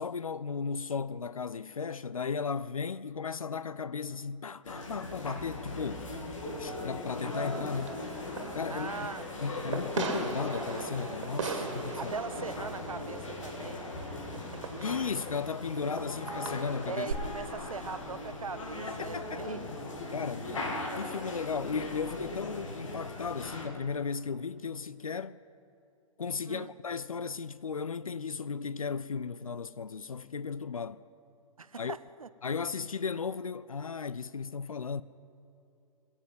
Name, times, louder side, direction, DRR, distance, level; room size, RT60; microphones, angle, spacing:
voice 1, 0.0-6.1 6.6-8.0 8.5-9.1 9.4-12.1 14.8-17.1 18.9-19.5 20.1-20.7 21.0-25.4 26.2-31.0 31.8-32.0 32.4-35.0, left 5 dB, 80° left, 0.4 m, -35 dB
sound 1, 4.6-23.7, left 2 dB, 65° left, 2.5 m, -39 dB
Fireworks, 7.1-17.1, right 4 dB, 60° right, 2.0 m, -40 dB
voice 2, 8.7-9.7 11.5-11.7 12.0-13.9 14.3-14.6 16.8-19.7 20.2-20.6 26.5-26.7 31.6-32.3, right 5 dB, 80° right, 0.6 m, -41 dB
22.0 x 7.4 x 7.8 m
figure-of-eight pair, 110°, 18 cm